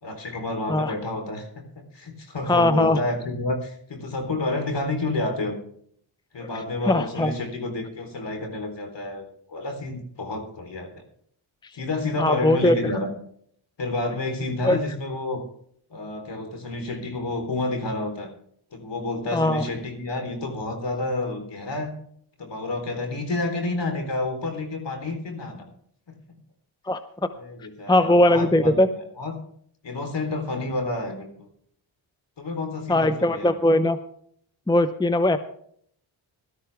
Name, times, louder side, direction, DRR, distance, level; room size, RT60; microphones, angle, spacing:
voice 1, 0.0-5.6 6.3-11.0 11.7-13.1 13.8-15.4 15.9-18.3 18.7-21.9 22.4-25.7 26.1-26.2 27.4-28.7 29.2-29.4 29.8-31.5 32.4-33.5, left 2 dB, 60° left, 4 dB, 3.8 m, -29 dB
voice 2, 2.5-3.0 6.8-7.3 12.2-12.8 14.6-14.8 19.3-19.6 26.9-27.0 27.9-28.9 32.9-34.0 34.7-35.4, left 1 dB, 10° left, 11 dB, 0.7 m, -20 dB
17.5 x 12.5 x 3.5 m, 0.64 s
cardioid pair, 60°, 49 cm